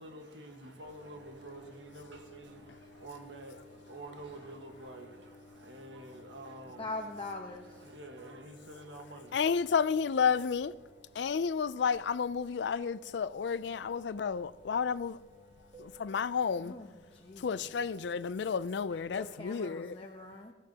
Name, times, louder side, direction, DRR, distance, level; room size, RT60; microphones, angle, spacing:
voice 1, 0.0-7.1 7.4-9.4, right 2 dB, 80° right, 1.5 m, -48 dB
sound 1, 0.8-19.5, left 1 dB, 25° right, 2.4 m, -58 dB
voice 2, 6.8-7.8 16.6-17.6 18.9-20.5, left 2 dB, 30° left, 0.9 m, -43 dB
voice 3, 9.3-10.8 11.2-15.2 15.8-16.7 17.4-20.0, left 6 dB, 70° left, 0.4 m, -31 dB
21.0 x 14.0 x 2.9 m
head